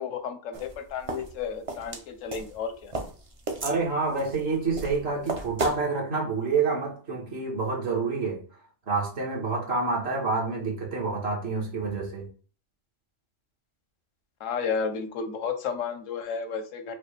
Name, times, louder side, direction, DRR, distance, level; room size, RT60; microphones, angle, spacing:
voice 1, 0.0-2.9 14.4-16.9, left 6 dB, 90° left, 1.1 m, -32 dB
sound 1, 0.5-5.8, right 3 dB, 40° right, 0.5 m, -34 dB
voice 2, 3.6-8.4 8.9-12.3, right 4 dB, 55° right, 1.5 m, -28 dB
5.0 x 2.3 x 3.2 m
omnidirectional pair, 1.3 m